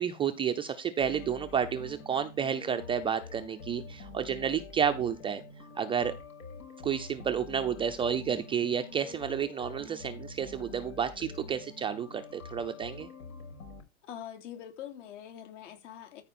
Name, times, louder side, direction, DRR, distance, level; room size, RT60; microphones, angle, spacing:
voice 1, 0.0-5.4 5.8-6.1 6.8-13.1, right 8 dB, 15° right, 0.5 m, -31 dB
sound 1, 1.0-13.8, left 4 dB, 85° left, 5.4 m, -46 dB
voice 2, 14.1-16.2, left 10 dB, 60° left, 3.5 m, -44 dB
13.5 x 5.0 x 4.3 m
hypercardioid pair, 135°, 41 cm